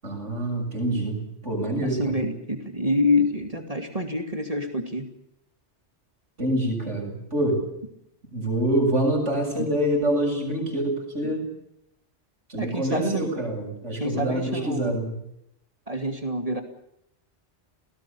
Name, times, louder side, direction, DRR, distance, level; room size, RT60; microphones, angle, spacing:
voice 1, 0.0-1.2 1.4-2.2 6.4-7.6 8.3-11.5 12.5-15.2, right 1 dB, 85° right, 3 dB, 7.8 m, -26 dB
voice 2, 1.7-5.1 11.2-11.3 12.6-13.3 14.0-15.0 15.9-16.6, left 2 dB, 30° right, 5 dB, 2.7 m, -27 dB
27.5 x 18.5 x 7.1 m, 0.77 s
omnidirectional pair, 1.2 m